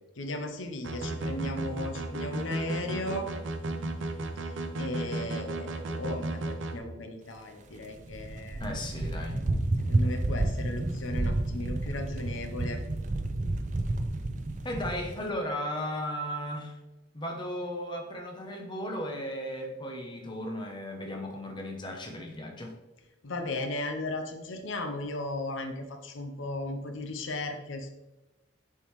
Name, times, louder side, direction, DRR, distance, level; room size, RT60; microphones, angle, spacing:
voice 1, 0.2-3.3 4.8-8.6 9.9-12.8 23.2-27.9, left 2 dB, 85° left, 5 dB, 0.7 m, -36 dB
sound 1, 0.8-6.8, right 2 dB, 75° right, 0.7 m, -34 dB
sound 2, 7.7-15.3, right 2 dB, 40° right, 0.5 m, -30 dB
voice 2, 8.6-9.4 14.6-16.7 17.1-22.7, equal, 25° left, 2 dB, 0.8 m, -35 dB
6.8 x 4.6 x 3.1 m, 1.0 s
head